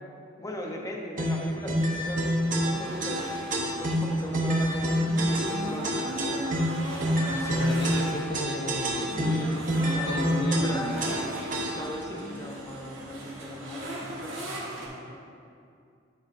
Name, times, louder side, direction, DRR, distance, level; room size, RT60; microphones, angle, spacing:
voice 1, 0.4-2.3 2.7-3.2 3.8-6.4 9.2-10.1 10.5-10.9 11.8-15.2, left 1 dB, 20° left, 0 dB, 0.7 m, -39 dB
sound 1, 1.2-12.0, equal, 45° right, 0.9 m, -27 dB
sound 2, 1.7-14.9, right 1 dB, 75° right, 1.8 m, -38 dB
voice 2, 7.2-9.4 10.0-11.2, left 2 dB, 60° left, 3 dB, 0.6 m, -35 dB
12.0 x 6.3 x 2.6 m, 2.4 s
head